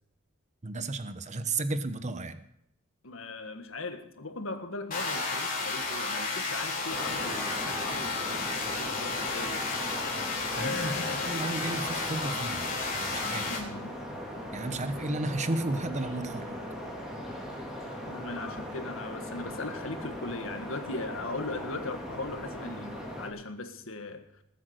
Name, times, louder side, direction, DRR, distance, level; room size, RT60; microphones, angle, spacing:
voice 1, 0.6-2.4 10.6-10.9 11.3-13.5 14.5-16.6, right 2 dB, 35° right, 11 dB, 1.0 m, -33 dB
voice 2, 3.0-9.7 10.5-11.7 13.4-14.0 18.0-24.3, left 3 dB, 80° left, 7 dB, 1.7 m, -39 dB
sound 1, 4.9-13.6, left 3 dB, 45° left, 4.0 m, -32 dB
sound 2, 6.9-23.3, equal, 5° right, 3.7 m, -39 dB
20.0 x 8.4 x 6.6 m, 0.79 s
head